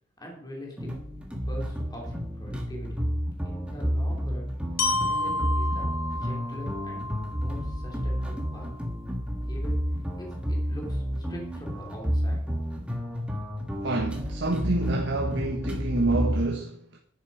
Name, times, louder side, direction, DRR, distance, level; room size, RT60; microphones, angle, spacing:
voice 1, 0.2-0.9 1.5-3.0 3.4-7.0 7.4-8.7 9.4-12.4, equal, 20° left, 3.2 m, -43 dB
sound 1, 0.8-16.5, equal, 5° right, 1.6 m, -30 dB
Glockenspiel, 4.8-8.8, left 2 dB, 80° left, 1.6 m, -32 dB
voice 2, 13.8-17.0, right 2 dB, 60° right, 1.4 m, -28 dB
10.5 x 8.7 x 4.9 m
head